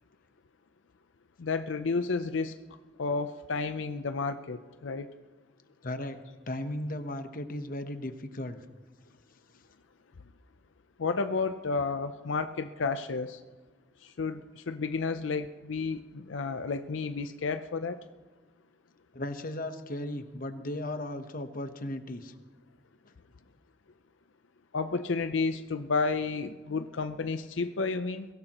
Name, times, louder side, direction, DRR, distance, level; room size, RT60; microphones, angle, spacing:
voice 1, 1.4-2.6 3.0-5.1 11.0-13.4 14.0-18.0 24.7-28.3, left 4 dB, 90° left, 9 dB, 0.6 m, -31 dB
voice 2, 5.8-6.2 6.5-8.6 19.1-22.3 26.7-26.9, left 1 dB, 50° left, 8 dB, 1.0 m, -36 dB
22.5 x 17.0 x 3.0 m, 1.3 s
head